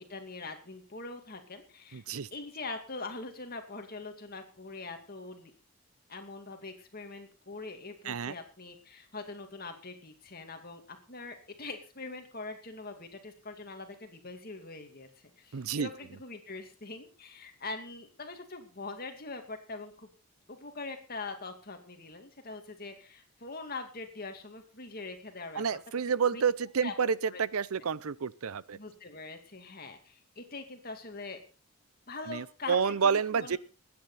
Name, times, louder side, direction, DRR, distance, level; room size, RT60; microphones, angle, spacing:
voice 1, 0.0-5.5 6.1-20.1 20.5-25.6 26.3-26.4 26.8-27.4 28.7-31.4 32.1-33.6, left 3 dB, 45° left, 5 dB, 2.4 m, -43 dB
voice 2, 1.9-2.3 8.0-8.3 15.5-15.9 25.6-28.8 32.3-33.6, right 6 dB, 80° right, 20 dB, 0.6 m, -29 dB
21.0 x 9.8 x 4.2 m, 0.35 s
head